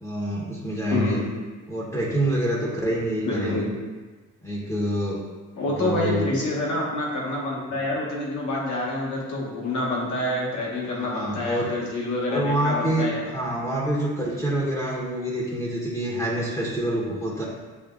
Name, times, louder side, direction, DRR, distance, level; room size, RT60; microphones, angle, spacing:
voice 1, 0.0-1.2 1.7-3.7 4.4-5.2 5.7-6.3 10.9-11.7 12.3-17.4, right 1 dB, 10° left, -5 dB, 1.0 m, -26 dB
voice 2, 0.9-1.3 3.3-3.7 5.6-13.3, left 1 dB, 70° left, -4 dB, 1.4 m, -27 dB
6.9 x 2.8 x 2.4 m, 1.3 s
cardioid pair, 90°, 30 cm